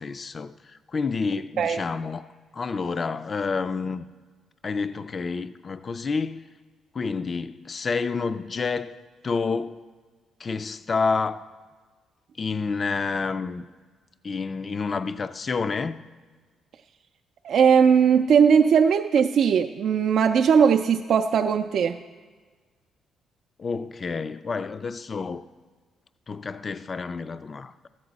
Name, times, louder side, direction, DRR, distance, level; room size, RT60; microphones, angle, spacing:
voice 1, 0.0-2.3 2.5-4.1 4.6-6.4 6.9-9.0 9.2-9.8 10.4-11.4 12.4-13.7 14.2-16.0 23.6-25.5 26.3-27.9, left 4 dB, 40° left, 0.3 m, -29 dB
voice 2, 17.4-22.0, right 7 dB, 65° right, 0.4 m, -19 dB
13.0 x 8.7 x 4.0 m
cardioid pair, 90°, 0 cm